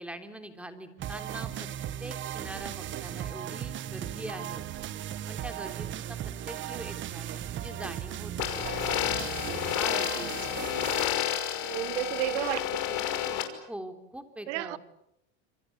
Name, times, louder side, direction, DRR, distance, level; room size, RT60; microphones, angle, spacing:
voice 1, 0.0-1.7 2.0-4.7 5.3-8.8 9.5-10.3 13.7-14.8, right 1 dB, 5° right, 3.5 m, -43 dB
sound 1, 1.0-11.1, right 11 dB, 35° right, 1.3 m, -37 dB
sound 2, 8.4-13.4, left 12 dB, 55° left, 5.7 m, -30 dB
voice 2, 11.6-13.4 14.5-14.8, right 19 dB, 75° right, 1.4 m, -33 dB
28.0 x 25.0 x 8.3 m
supercardioid pair, 130°, 34 cm